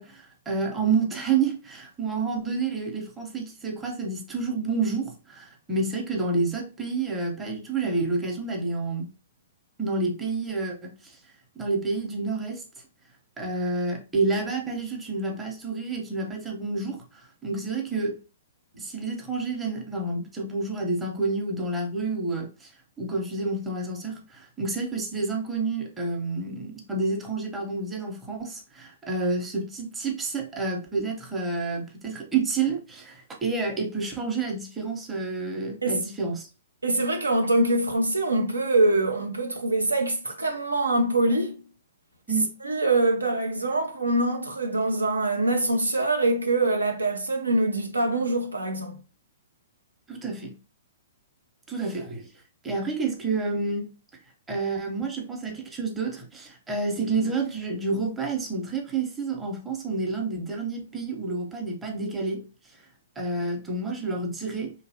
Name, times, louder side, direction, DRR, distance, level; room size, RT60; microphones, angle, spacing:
voice 1, 0.0-9.1 9.8-11.1 11.6-12.6 13.4-18.2 18.8-22.7 23.0-36.5 42.3-42.5 50.1-50.6 51.7-52.3 52.6-53.9 54.5-62.5 63.2-64.7, right 3 dB, 15° right, 0.8 m, -29 dB
voice 2, 36.8-41.6 42.6-49.0, right 2 dB, 90° right, 0.5 m, -24 dB
2.8 x 2.3 x 2.7 m
figure-of-eight pair, 115°, 0 cm